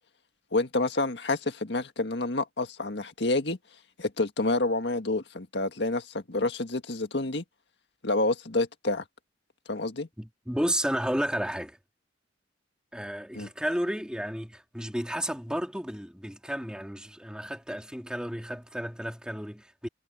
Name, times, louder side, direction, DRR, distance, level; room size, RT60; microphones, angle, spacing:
voice 1, 0.5-3.6 4.0-7.4 8.0-9.0 9.7-10.1 13.3-13.5, left 2 dB, 60° left, 1.8 m, -28 dB
voice 2, 10.2-11.8 12.9-19.9, equal, 5° right, 3.5 m, -32 dB
head